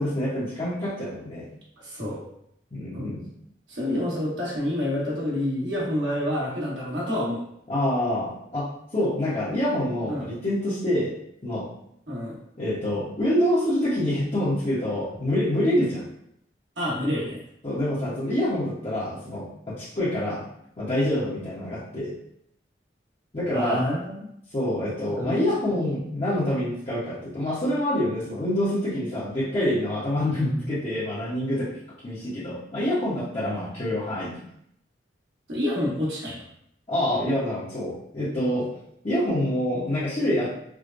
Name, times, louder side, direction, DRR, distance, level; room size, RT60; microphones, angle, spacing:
voice 1, 0.0-1.4 2.7-3.2 7.7-11.1 11.4-11.7 12.6-16.0 17.6-20.4 20.8-22.1 23.3-23.9 24.5-31.7 32.0-34.4 36.9-38.7 39.0-40.5, left 1 dB, 35° left, -12 dB, 1.0 m, -26 dB
voice 2, 1.8-2.2 2.9-3.2 3.7-7.4 10.1-10.3 12.1-12.4 16.8-17.4 23.5-24.2 25.2-25.8 30.4-30.7 35.5-36.4, left 1 dB, 80° right, -5 dB, 1.4 m, -28 dB
4.8 x 2.1 x 2.5 m, 0.73 s
head